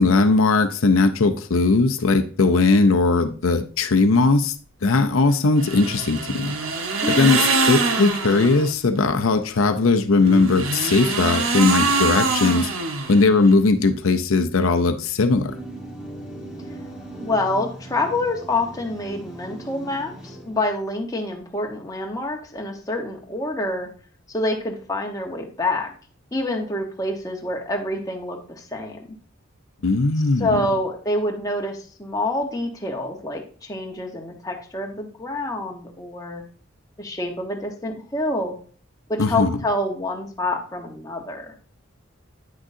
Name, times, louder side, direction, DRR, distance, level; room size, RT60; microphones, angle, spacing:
voice 1, 0.0-4.5 4.8-6.5 7.1-7.4 7.7-12.7 13.1-15.5 29.8-30.6 39.2-39.6, left 3 dB, 85° left, 7 dB, 0.6 m, -19 dB
sound 1, 5.6-8.7 10.2-13.5, right 3 dB, 85° right, 1.0 m, -24 dB
voice 2, 7.0-7.4 17.2-23.9 24.3-25.9 26.3-29.1 30.4-36.4 37.0-38.6 39.1-41.5, left 1 dB, 15° left, 1 dB, 1.1 m, -27 dB
sound 2, 15.5-20.7, right 1 dB, 5° right, 1.4 m, -38 dB
9.4 x 6.2 x 2.7 m, 0.42 s
head